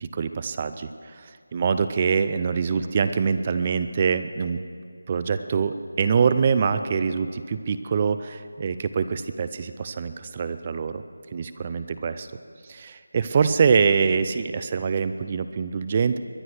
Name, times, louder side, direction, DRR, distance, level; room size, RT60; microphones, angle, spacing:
voice 1, 0.0-4.6 5.1-11.0 11.3-12.3 12.6-16.2, right 6 dB, 25° right, 11 dB, 0.5 m, -24 dB
22.0 x 9.9 x 6.4 m, 2.1 s
figure-of-eight pair, 170°, 0 cm